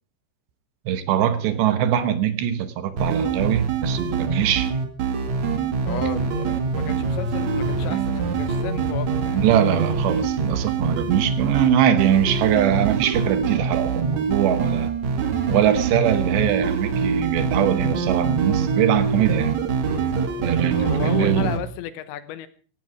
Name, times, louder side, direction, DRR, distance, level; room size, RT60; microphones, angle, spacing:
voice 1, 0.9-4.7 9.3-14.9 15.5-19.6 20.4-21.5, right 10 dB, 75° right, 3.0 m, -22 dB
sound 1, 3.0-21.6, right 5 dB, 50° right, 2.6 m, -24 dB
voice 2, 5.9-9.4 20.7-22.5, left 11 dB, 75° left, 3.3 m, -34 dB
sound 2, 6.6-13.0, left 1 dB, 40° left, 1.7 m, -39 dB
16.5 x 15.5 x 4.9 m
omnidirectional pair, 5.4 m